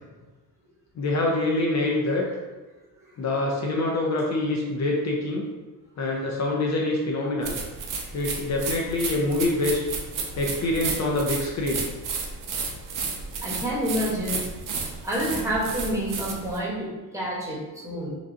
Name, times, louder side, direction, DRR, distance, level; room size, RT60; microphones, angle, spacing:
voice 1, 1.0-2.2 3.2-5.5 6.0-7.6 8.1-9.8 10.4-11.9, left 2 dB, 50° left, -1 dB, 0.6 m, -25 dB
sound 1, 7.4-16.6, right 4 dB, 60° right, 0.7 m, -32 dB
voice 2, 13.4-14.4 15.0-18.1, equal, 10° right, -6 dB, 1.1 m, -28 dB
5.8 x 2.5 x 2.7 m, 1.2 s
cardioid pair, 160°, 37 cm